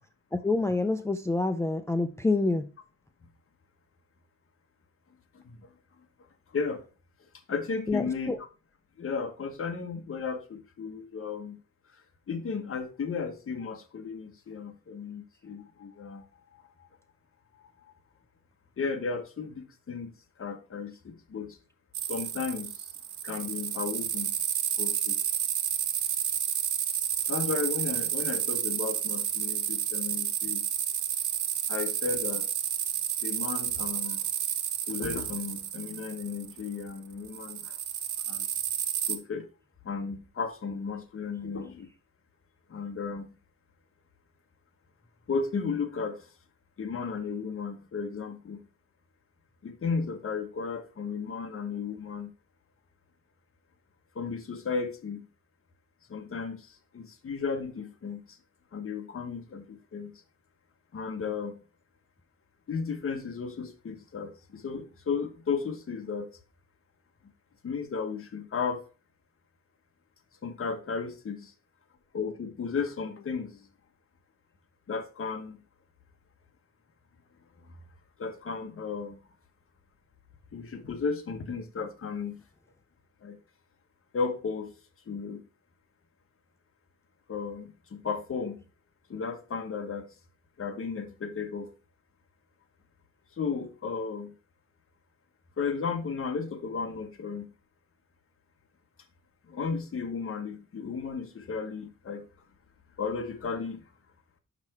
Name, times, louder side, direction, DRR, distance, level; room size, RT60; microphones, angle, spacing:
voice 1, 0.3-2.7 7.9-8.4, left 3 dB, 10° left, 0.4 m, -27 dB
voice 2, 7.5-8.4 9.0-11.6 12.3-16.2 16.5-16.6 18.8-20.1 20.4-21.6 22.1-22.9 23.2-24.4 24.8-25.2 27.3-30.6 31.7-32.4 33.2-34.3 34.9-37.8 38.3-38.5 39.1-39.5 39.8-41.9 42.7-43.3 45.3-46.3 46.8-48.6 49.6-52.3 54.1-55.3 56.1-58.4 58.7-60.1 60.9-61.6 62.7-66.3 67.6-68.8 70.4-71.5 72.1-73.7 74.9-75.6 78.2-79.2 80.5-82.4 83.2-83.4 84.1-84.7 85.1-85.4 87.3-88.6 89.1-90.1 90.6-91.7 93.4-94.3 95.6-97.5 99.5-102.2 103.0-103.8, left 5 dB, 45° left, 1.2 m, -34 dB
sound 1, 21.9-36.9 37.3-39.2, right 9 dB, 75° right, 0.9 m, -31 dB
5.8 x 5.8 x 4.3 m
cardioid pair, 115°, 30 cm